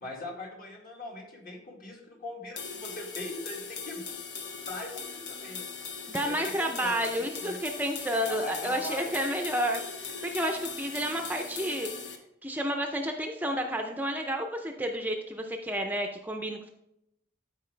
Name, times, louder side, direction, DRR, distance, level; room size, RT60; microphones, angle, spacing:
voice 1, 0.0-4.0 4.7-5.7 6.0-7.7 8.2-9.3, left 2 dB, 50° left, -1 dB, 2.1 m, -41 dB
sound 1, 2.6-12.2, left 5 dB, 70° left, 1.0 m, -40 dB
voice 2, 6.1-11.9 12.4-16.7, equal, 10° right, 3 dB, 0.5 m, -31 dB
12.0 x 4.7 x 3.3 m, 0.81 s
head